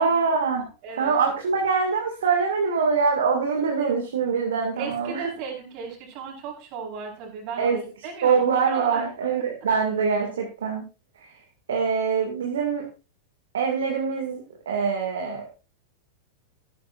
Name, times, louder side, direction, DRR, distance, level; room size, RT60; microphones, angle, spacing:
voice 1, 0.0-0.6 1.0-5.2 7.6-7.8 8.2-10.8 11.7-12.8 13.5-14.4 14.7-15.4, right 5 dB, 65° right, 1 dB, 2.4 m, -24 dB
voice 2, 0.8-1.1 4.7-9.1, right 6 dB, 45° right, 1 dB, 4.9 m, -35 dB
14.5 x 12.0 x 2.6 m, 0.32 s
figure-of-eight pair, 90°, 0 cm